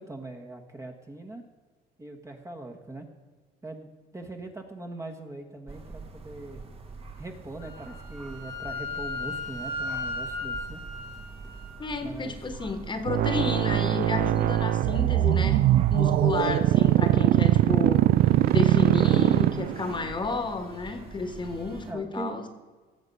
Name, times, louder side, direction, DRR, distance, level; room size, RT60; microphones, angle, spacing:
voice 1, 0.0-1.4 2.0-3.1 3.6-3.9 4.1-6.6 7.2-10.8 12.0-12.4 16.8-17.3 17.5-18.0 21.9-22.4, right 2 dB, 15° right, 4 dB, 1.4 m, -40 dB
sound 1, 5.7-21.9, right 4 dB, 35° right, 1.6 m, -44 dB
Wind instrument woodwind instrument, 7.6-11.8, left 2 dB, 90° left, 1.8 m, -36 dB
voice 2, 11.8-18.0 18.5-22.5, left 3 dB, 25° left, 7 dB, 1.5 m, -31 dB
sound 2, 13.1-20.0, right 14 dB, 60° right, 0.4 m, -22 dB
17.0 x 7.0 x 5.4 m, 1.4 s
cardioid pair, 110°, 17 cm